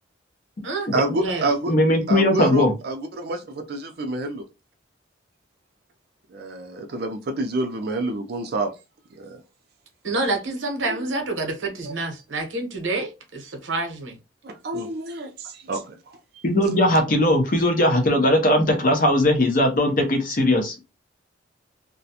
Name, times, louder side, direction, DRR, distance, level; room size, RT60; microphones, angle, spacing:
voice 1, 0.9-1.7 2.1-4.4 6.3-8.7 9.2-9.4 10.9-11.1 11.8-11.9 14.4-16.2, right 2 dB, 50° right, 0.4 m, -28 dB
voice 2, 1.7-2.7 16.4-20.8, left 1 dB, 45° left, 0.6 m, -19 dB
voice 3, 10.0-14.2, right 2 dB, 70° right, 0.7 m, -28 dB
2.4 x 2.1 x 2.7 m
head